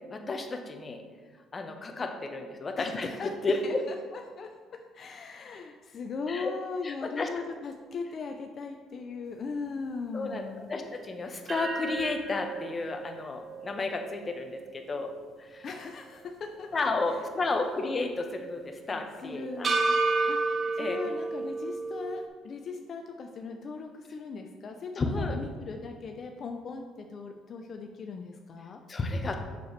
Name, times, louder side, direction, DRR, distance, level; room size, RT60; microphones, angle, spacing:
voice 1, 0.1-1.0 1.5-3.1 3.4-3.8 6.3-6.5 6.8-7.3 10.1-15.1 15.4-15.7 16.7-19.7 20.8-21.0 25.0-25.4 28.9-29.4, left 3 dB, 35° left, 5 dB, 1.0 m, -32 dB
voice 2, 2.8-3.3 3.6-4.5 4.9-10.7 15.6-16.9 18.9-19.8 20.3-28.8, left 4 dB, 50° left, 4 dB, 0.5 m, -39 dB
sound 1, 11.5-15.8 16.1-16.2 19.6-22.3, right 3 dB, 45° right, 0.8 m, -31 dB
6.8 x 6.7 x 3.3 m, 1.5 s
supercardioid pair, 75°, 0 cm